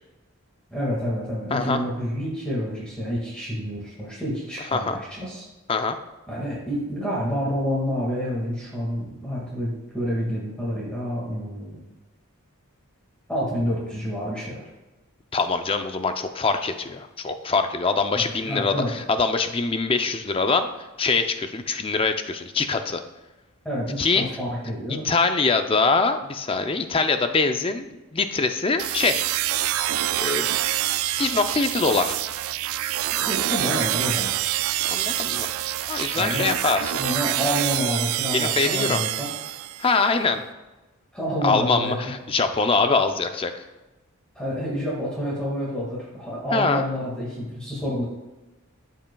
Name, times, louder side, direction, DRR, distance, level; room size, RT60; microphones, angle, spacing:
voice 1, 0.7-5.4 6.3-11.8 13.3-14.6 18.1-18.9 23.6-25.1 33.2-34.3 36.1-36.5 36.9-39.3 41.1-42.0 44.3-48.0, equal, 5° left, -6 dB, 1.8 m, -28 dB
voice 2, 15.3-20.7 21.0-23.0 24.0-24.2 25.0-27.9 28.1-29.3 30.1-30.5 31.2-32.2 34.9-35.5 35.9-36.9 38.3-39.0 39.8-40.4 41.4-43.5 46.5-46.8, left 4 dB, 25° left, 7 dB, 0.5 m, -23 dB
sound 1, 28.8-40.0, right 13 dB, 75° right, 0.3 m, -26 dB
14.0 x 5.6 x 2.3 m, 1.1 s
head